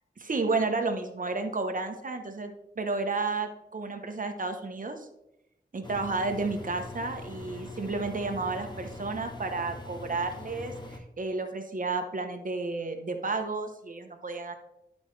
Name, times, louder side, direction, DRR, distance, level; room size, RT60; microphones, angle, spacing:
voice 1, 0.2-5.1 5.7-14.6, right 3 dB, 50° right, 5 dB, 1.0 m, -32 dB
Engine, 5.8-11.0, left 2 dB, 25° left, 1.1 m, -42 dB
11.0 x 5.2 x 3.3 m, 0.88 s
wide cardioid pair, 90°, 18 cm